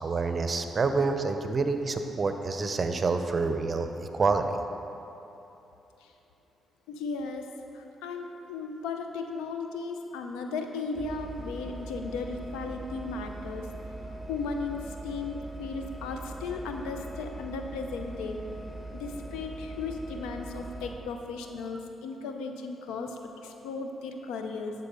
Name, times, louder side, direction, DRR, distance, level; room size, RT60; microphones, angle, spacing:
voice 1, 0.0-4.6, right 4 dB, 45° right, 7 dB, 0.6 m, -27 dB
voice 2, 6.9-13.7 14.1-18.4 18.9-24.7, left 4 dB, 90° left, 5 dB, 0.6 m, -36 dB
sound 1, 11.0-21.0, right 2 dB, 5° right, 1.5 m, -41 dB
11.0 x 4.1 x 5.5 m, 2.9 s
supercardioid pair, 55°, 0 cm